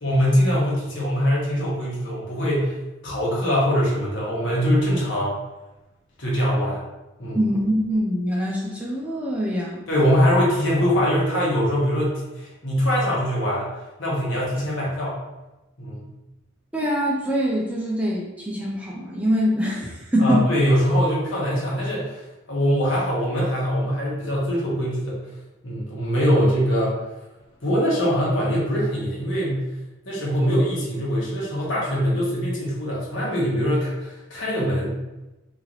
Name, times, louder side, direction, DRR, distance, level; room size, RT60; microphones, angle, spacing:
voice 1, 0.0-2.7 3.0-5.3 6.2-6.8 7.2-7.4 9.9-15.2 15.8-16.1 20.2-22.2 22.5-25.1 25.6-26.9 27.6-29.7 30.0-35.0, equal, 65° left, -5 dB, 1.2 m, -22 dB
voice 2, 7.3-9.8 16.7-20.5, equal, 5° right, -4 dB, 0.4 m, -24 dB
3.0 x 2.9 x 3.9 m, 1.0 s
head